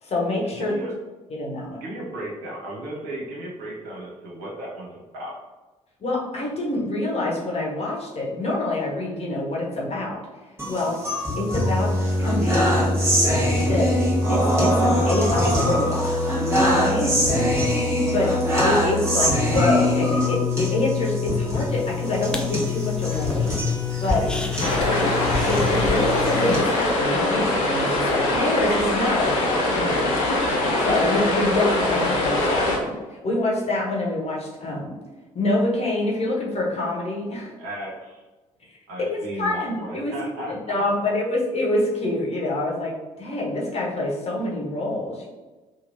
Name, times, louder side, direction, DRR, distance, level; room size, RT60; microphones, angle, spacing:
voice 1, 0.0-0.8 1.3-1.8 6.0-10.2 10.7-11.0 11.4-11.9 12.2-12.9 13.6-13.9 14.3-16.3 16.6-17.4 18.1-18.3 18.6-23.6 24.0-24.2 24.8-25.0 25.5-30.1 30.8-35.0 35.3-37.5 39.0-40.1 40.5-45.3, left 2 dB, 35° left, -3 dB, 0.9 m, -26 dB
voice 2, 0.6-0.9 1.8-5.4 24.1-24.5 37.6-38.2 38.9-40.8, right 1 dB, 65° right, -3 dB, 0.8 m, -35 dB
sound 1, 10.6-26.6, left 1 dB, 15° right, 1.2 m, -22 dB
sound 2, 21.7-26.9, left 1 dB, 5° left, 0.3 m, -33 dB
sound 3, 24.6-32.8, left 1 dB, 70° left, 0.6 m, -22 dB
2.9 x 2.6 x 2.5 m, 1.2 s
figure-of-eight pair, 45°, 17 cm